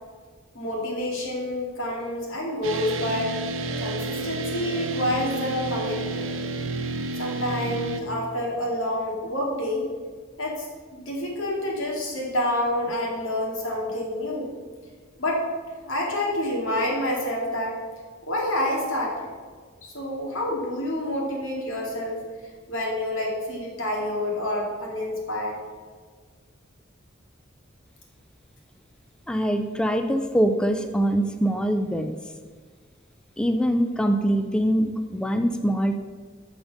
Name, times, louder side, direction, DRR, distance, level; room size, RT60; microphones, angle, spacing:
voice 1, 0.5-3.3 3.8-6.3 7.2-9.9 10.4-10.7 10.9-14.6 15.2-15.4 15.8-17.8 18.2-19.3 19.8-25.6, left 1 dB, 85° left, -2 dB, 2.3 m, -28 dB
sound 1, 2.6-8.0, right 2 dB, 85° right, 0.8 m, -30 dB
voice 2, 29.3-32.2 33.4-36.0, equal, 5° left, 6 dB, 0.4 m, -23 dB
6.5 x 6.2 x 6.3 m, 1.5 s
head